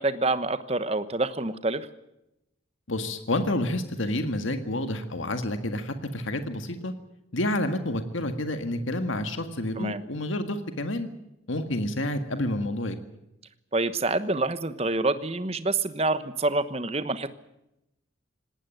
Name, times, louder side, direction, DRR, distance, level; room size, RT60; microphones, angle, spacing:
voice 1, 0.0-1.9 9.8-10.0 13.7-17.3, right 2 dB, 30° right, 12 dB, 1.1 m, -27 dB
voice 2, 2.9-6.9 7.3-11.1 11.5-12.9, left 1 dB, 80° left, 8 dB, 1.8 m, -29 dB
19.0 x 18.0 x 9.3 m, 0.86 s
head